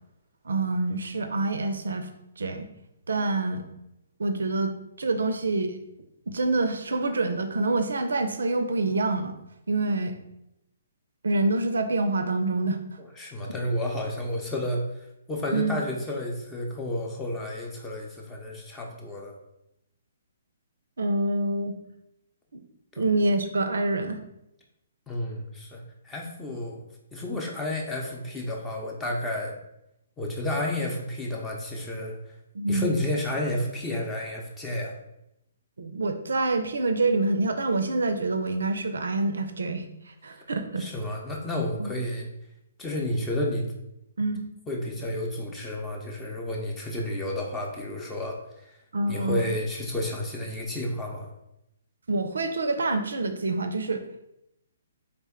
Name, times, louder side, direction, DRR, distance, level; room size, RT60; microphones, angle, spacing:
voice 1, 0.5-2.1 2.4-2.7 3.1-3.7 4.2-5.8 6.3-9.3 9.7-10.2 11.2-12.8 15.5-15.8 21.0-21.8 22.5-22.6 23.0-24.2 32.5-32.9 35.8-39.9 40.2-40.9 41.8-41.9 44.2-44.4 48.9-49.5 52.1-54.0, right 2 dB, 80° right, 8 dB, 0.4 m, -26 dB
voice 2, 13.2-14.8 15.3-19.3 22.9-23.0 25.1-26.9 27.1-29.5 30.2-32.1 32.7-34.9 40.8-42.3 42.8-43.7 44.7-48.4 49.1-51.3, left 1 dB, 15° left, -1 dB, 0.6 m, -31 dB
3.5 x 2.1 x 3.6 m, 0.83 s
hypercardioid pair, 140°, 0 cm